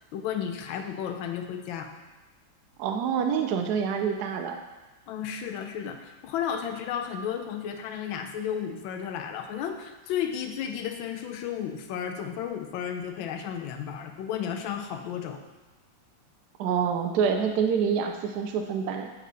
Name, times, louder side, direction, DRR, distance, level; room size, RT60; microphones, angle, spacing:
voice 1, 0.1-1.9 5.1-15.4, left 8 dB, 85° left, 6 dB, 1.4 m, -33 dB
voice 2, 2.8-4.6 16.6-19.1, right 7 dB, 70° right, 5 dB, 1.0 m, -26 dB
8.2 x 4.3 x 4.0 m, 1.2 s
omnidirectional pair, 2.1 m